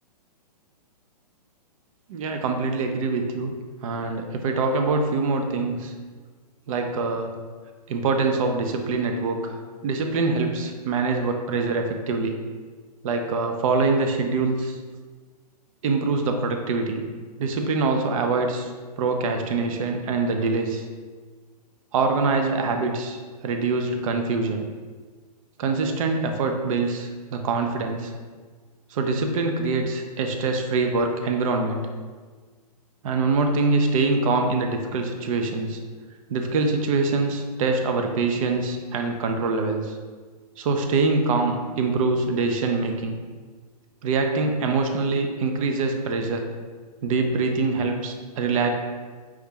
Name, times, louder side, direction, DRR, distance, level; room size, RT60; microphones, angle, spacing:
voice 1, 2.1-3.5 3.8-5.9 6.7-7.3 7.9-12.3 13.0-14.8 15.8-17.0 17.4-18.7 19.0-20.9 21.9-24.6 25.6-28.1 28.9-31.8 33.0-35.8 36.3-40.0 40.6-43.2 44.0-46.4 47.0-48.7, right 3 dB, 55° right, 4 dB, 0.6 m, -24 dB
4.6 x 2.9 x 3.7 m, 1.5 s
hypercardioid pair, 135°, 21 cm